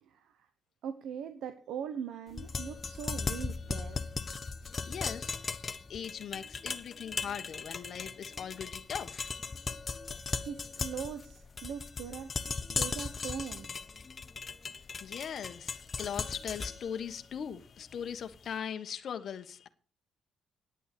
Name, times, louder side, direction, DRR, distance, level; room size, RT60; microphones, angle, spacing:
voice 1, 0.8-4.0 10.5-13.7, right 8 dB, 80° right, 1.0 m, -41 dB
sound 1, 2.3-18.4, left 4 dB, 35° left, 1.0 m, -38 dB
voice 2, 4.9-5.4 5.9-9.3 10.1-10.2 15.0-19.7, left 8 dB, 60° left, 1.2 m, -40 dB
9.9 x 8.8 x 6.8 m
cardioid pair, 90°, 0 cm